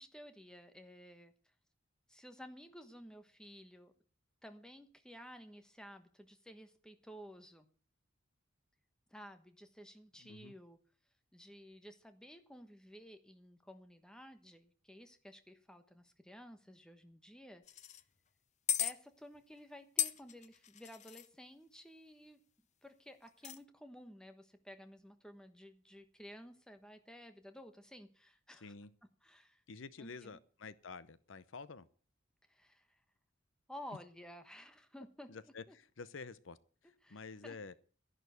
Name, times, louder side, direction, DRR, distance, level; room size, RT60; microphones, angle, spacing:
voice 1, 0.0-1.3 2.1-3.9 4.4-7.7 9.1-10.8 11.3-17.8 18.8-22.4 22.8-28.7 29.2-29.6 30.0-30.4 32.5-33.0 33.7-35.7 37.0-37.6, equal, 5° left, 1.2 m, -54 dB
voice 2, 10.2-10.5 28.6-28.9 29.7-31.9 35.3-36.6 36.8-37.7, left 4 dB, 75° left, 0.7 m, -49 dB
sound 1, 17.7-18.0 18.7-18.9 20.0-21.3 23.3-23.6, left 10 dB, 35° left, 0.5 m, -36 dB
11.5 x 11.0 x 6.8 m
head